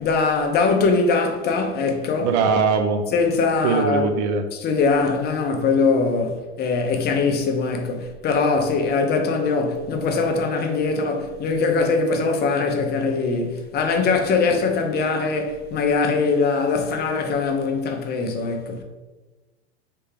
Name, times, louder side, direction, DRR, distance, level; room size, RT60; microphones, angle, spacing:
voice 1, 0.0-2.3 3.1-4.1 4.6-18.8, left 4 dB, 30° left, 0.7 m, -22 dB
voice 2, 2.2-3.1 3.6-4.5, right 5 dB, 40° right, 0.4 m, -21 dB
4.5 x 3.4 x 3.3 m
hypercardioid pair, 95°, 33 cm